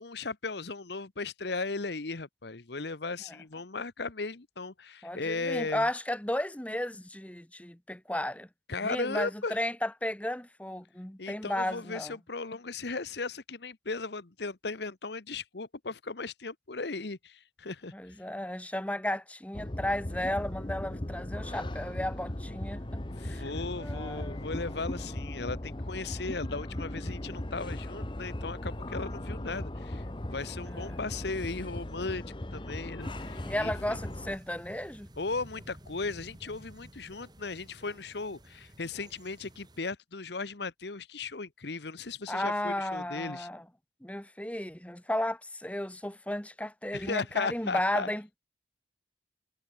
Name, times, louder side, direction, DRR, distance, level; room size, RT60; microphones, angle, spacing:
voice 1, 0.0-5.9 8.7-9.6 11.2-17.9 23.1-32.3 32.5-34.0 35.2-43.5 46.9-48.1, left 3 dB, 60° left, 1.1 m, -36 dB
voice 2, 5.0-8.5 8.8-12.1 17.9-23.5 23.8-24.4 30.6-31.0 33.4-35.1 42.3-43.6 44.0-48.4, left 1 dB, 5° left, 1.2 m, -34 dB
sound 1, 19.5-34.4, left 1 dB, 25° left, 1.0 m, -38 dB
sound 2, 33.0-39.8, equal, 20° right, 5.7 m, -52 dB
head